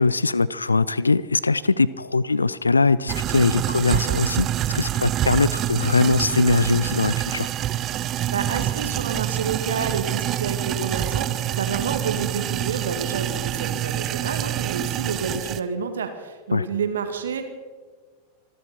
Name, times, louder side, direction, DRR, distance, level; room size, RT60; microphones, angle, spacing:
voice 1, 0.0-4.5 4.7-7.5 16.5-16.6, left 3 dB, 80° left, 19 dB, 0.4 m, -21 dB
sound 1, 3.1-15.6, right 12 dB, 30° right, 0.6 m, -26 dB
voice 2, 8.3-17.5, right 6 dB, 65° right, 7 dB, 2.1 m, -29 dB
25.5 x 12.5 x 4.4 m, 1.5 s
figure-of-eight pair, 90°, 0 cm